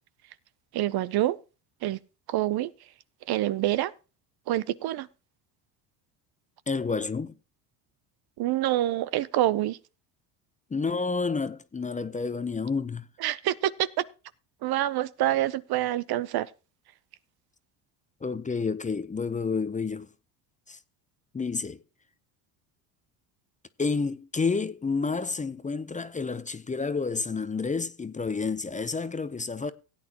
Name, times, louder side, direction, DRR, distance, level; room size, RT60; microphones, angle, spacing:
voice 1, 0.7-1.4 1.8-2.0 2.3-2.7 3.3-3.9 4.5-5.1 8.4-9.8 13.2-14.0 14.6-16.5, right 14 dB, 55° right, 0.7 m, -26 dB
voice 2, 6.7-7.3 10.7-13.1 18.2-20.1 20.7-20.8 21.3-21.8 23.8-29.7, left 4 dB, 15° left, 0.7 m, -30 dB
17.0 x 8.8 x 2.9 m
supercardioid pair, 80°, 47 cm